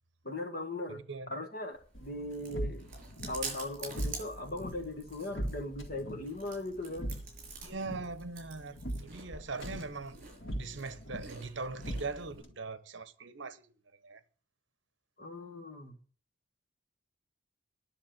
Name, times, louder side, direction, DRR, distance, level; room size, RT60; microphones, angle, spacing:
voice 1, 0.2-2.9 3.3-7.1 15.2-16.0, left 2 dB, 50° left, 1.8 m, -39 dB
voice 2, 0.9-1.3 7.6-10.2 10.5-13.7 14.0-14.2, right 3 dB, 65° right, 1.0 m, -41 dB
Chewing mastication, 1.7-12.4, right 4 dB, 40° right, 5.6 m, -48 dB
sound 1, 1.9-12.5, equal, 75° left, 2.1 m, -42 dB
10.5 x 6.5 x 9.0 m
head